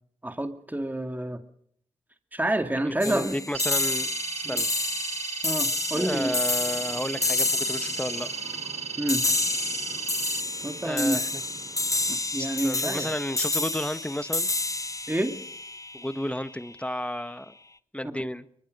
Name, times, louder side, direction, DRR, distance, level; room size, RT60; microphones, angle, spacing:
voice 1, 0.2-1.4 2.3-3.4 4.4-4.6 5.4-6.3 9.0-9.2 10.6-11.2 12.1-13.1 15.1-15.4 18.2-18.3, right 1 dB, 15° right, 7 dB, 2.4 m, -28 dB
voice 2, 2.8-4.1 4.5-4.7 5.9-8.3 10.8-11.4 12.4-14.5 15.9-17.5 17.9-18.5, left 1 dB, 10° left, 12 dB, 1.4 m, -32 dB
sound 1, 3.0-16.5, left 2 dB, 25° left, 1.1 m, -29 dB
sound 2, 3.5-10.4, right 7 dB, 60° right, 0.8 m, -35 dB
sound 3, 6.0-12.1, right 3 dB, 75° right, 6.1 m, -47 dB
22.0 x 22.0 x 6.6 m, 0.66 s
supercardioid pair, 40°, 13 cm